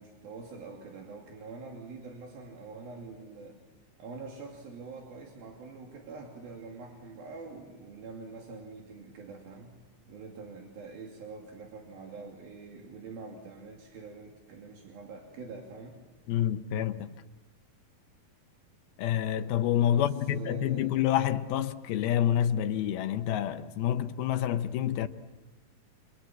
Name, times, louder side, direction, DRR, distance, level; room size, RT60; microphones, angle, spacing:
voice 1, 0.0-3.6 4.0-9.7 10.1-16.0 19.9-20.9, right 4 dB, 75° right, 4.5 m, -45 dB
voice 2, 16.3-17.1 19.0-25.1, left 11 dB, 85° left, 2.9 m, -28 dB
29.5 x 25.0 x 7.5 m
omnidirectional pair, 4.2 m